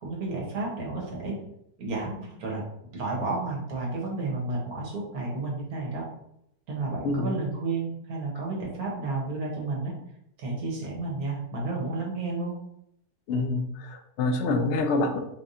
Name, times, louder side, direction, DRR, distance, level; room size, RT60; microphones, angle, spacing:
voice 1, 0.0-1.3 1.8-2.6 2.9-6.1 6.7-9.9 10.4-12.5, right 3 dB, 65° right, -2 dB, 1.5 m, -31 dB
voice 2, 7.0-7.3 13.3-15.2, left 2 dB, 65° left, 5 dB, 0.6 m, -26 dB
4.1 x 3.4 x 2.6 m, 0.77 s
omnidirectional pair, 1.7 m